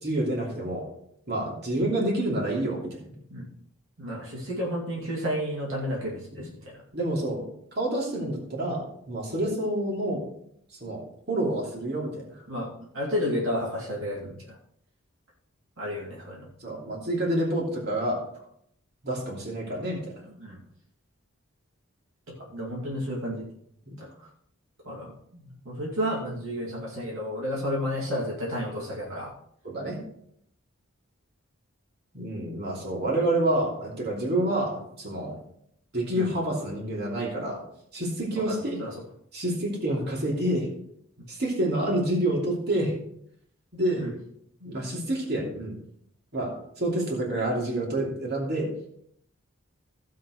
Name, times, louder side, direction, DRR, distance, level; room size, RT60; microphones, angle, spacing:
voice 1, 0.0-0.9 1.3-3.2 6.3-6.4 6.9-7.5 7.8-10.2 10.8-11.0 11.3-12.3 16.6-18.2 19.0-20.1 29.6-30.0 32.1-35.4 35.9-37.6 37.9-38.8 39.3-40.7 41.3-42.9 43.7-44.2 44.6-45.8 46.3-48.7, right 1 dB, 45° right, -2 dB, 2.9 m, -28 dB
voice 2, 4.0-6.8 12.5-14.6 15.8-16.5 20.4-20.6 22.4-23.5 24.0-24.3 24.8-29.3 36.1-36.2 38.5-38.9 44.0-44.1, equal, 70° right, -4 dB, 2.4 m, -32 dB
16.0 x 7.5 x 3.2 m, 0.70 s
head